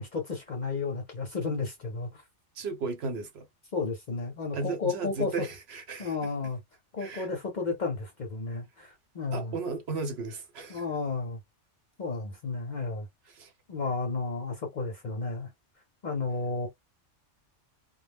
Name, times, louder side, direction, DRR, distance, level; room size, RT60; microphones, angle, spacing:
voice 1, 0.0-2.2 3.7-5.5 6.0-6.6 6.9-9.5 10.7-11.4 12.0-13.1 13.7-15.5 16.0-16.7, left 4 dB, 50° left, 0.6 m, -32 dB
voice 2, 2.5-3.5 4.5-6.3 7.0-7.3 9.3-10.8 13.3-13.5, right 4 dB, 65° right, 0.9 m, -35 dB
2.2 x 2.1 x 3.3 m
omnidirectional pair, 1.2 m